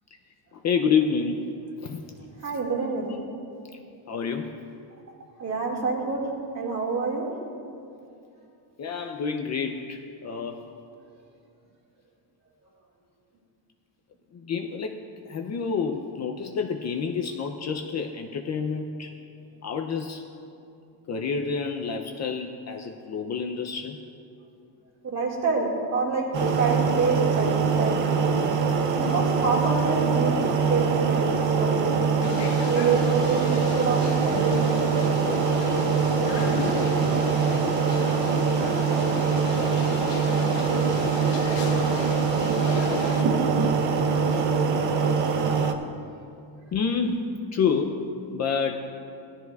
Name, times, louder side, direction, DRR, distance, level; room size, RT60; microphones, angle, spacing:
voice 1, 0.5-1.5 1.8-2.0 3.0-3.2 4.1-4.6 8.8-10.6 14.3-19.1 19.6-20.2 21.1-24.0 46.7-48.9, left 5 dB, 40° left, 4 dB, 0.5 m, -28 dB
voice 2, 2.4-3.1 5.4-6.3 6.5-7.3 25.0-26.2 26.6-28.0 29.0-30.4 30.7-32.1 32.7-34.7 43.8-44.3, right 4 dB, 40° right, -2 dB, 2.0 m, -27 dB
sound 1, 26.3-45.7, right 5 dB, 90° right, 0.9 m, -23 dB
sound 2, 32.2-43.2, left 6 dB, 75° left, 1.1 m, -36 dB
18.0 x 12.5 x 2.3 m, 2.6 s
cardioid pair, 180°, 44 cm